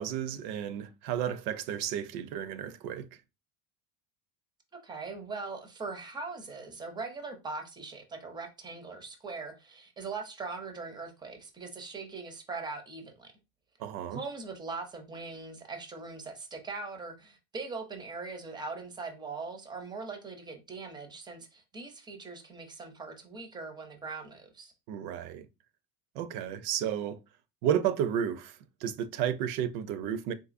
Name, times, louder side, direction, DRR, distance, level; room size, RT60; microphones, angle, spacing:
voice 1, 0.0-3.1 13.8-14.2 24.9-25.5 26.2-27.2 27.6-30.3, right 9 dB, 85° right, 0.6 m, -32 dB
voice 2, 4.7-13.3 14.1-24.7, right 4 dB, 10° right, 0.4 m, -41 dB
3.9 x 2.6 x 2.5 m
cardioid pair, 140°, 43 cm